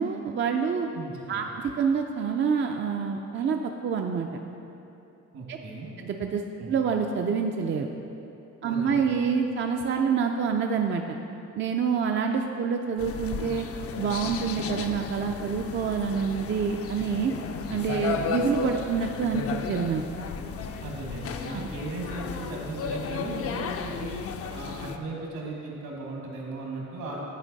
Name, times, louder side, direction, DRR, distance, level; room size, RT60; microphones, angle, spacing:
voice 1, 0.0-0.9 1.3-4.3 5.5-5.6 6.0-6.4 6.7-7.9 8.6-11.2 11.6-13.7 14.0-17.3 17.7-20.0 21.5-21.7, right 6 dB, 40° right, 3 dB, 0.4 m, -27 dB
voice 2, 0.9-1.5 5.3-5.9 6.6-6.8 8.7-9.1 20.8-24.2 24.5-27.2, right 2 dB, 70° right, -2 dB, 1.6 m, -37 dB
sound 1, 13.0-25.0, left 6 dB, 50° left, 0.5 m, -34 dB
9.8 x 4.5 x 3.9 m, 2.9 s
cardioid pair, 90°, 30 cm